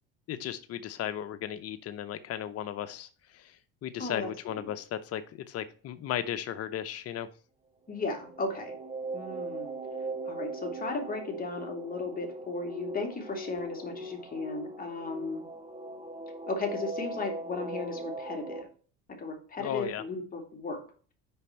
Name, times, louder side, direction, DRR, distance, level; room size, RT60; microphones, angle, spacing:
voice 1, 0.3-7.3 19.6-20.0, left 10 dB, 45° left, 0.7 m, -36 dB
voice 2, 4.0-4.3 7.9-8.8 9.1-9.7 10.2-15.4 16.5-18.7 19.2-20.8, left 3 dB, 25° left, 2.5 m, -35 dB
sound 1, 8.0-18.6, right 2 dB, 20° right, 1.6 m, -40 dB
6.9 x 5.1 x 4.4 m
supercardioid pair, 95°, 34 cm